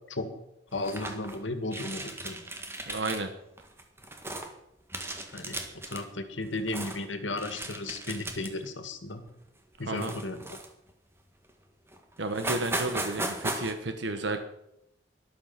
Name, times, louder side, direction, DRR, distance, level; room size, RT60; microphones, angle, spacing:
voice 1, 0.7-2.4 5.3-5.6 5.9-9.2 9.8-10.6, left 2 dB, 80° left, 8 dB, 2.0 m, -35 dB
sound 1, 0.7-1.4 1.7-3.2 3.6-4.5 4.9-6.0 6.4-7.0 7.4-8.7 9.1-9.3 9.9-10.9 11.5-11.6 11.9-12.0 12.3-13.7, right 1 dB, 15° right, 1.6 m, -36 dB
voice 2, 2.9-3.3 9.8-10.1 12.2-14.4, right 2 dB, 70° right, 7 dB, 1.2 m, -32 dB
13.5 x 12.0 x 5.9 m, 0.83 s
head